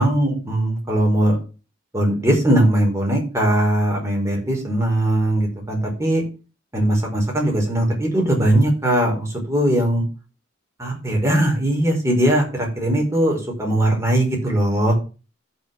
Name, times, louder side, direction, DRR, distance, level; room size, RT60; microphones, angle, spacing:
voice 1, 0.0-1.4 1.9-6.2 6.7-10.0 10.8-14.9, right 1 dB, 15° right, 0 dB, 4.9 m, -20 dB
15.0 x 6.7 x 3.6 m, 0.33 s
head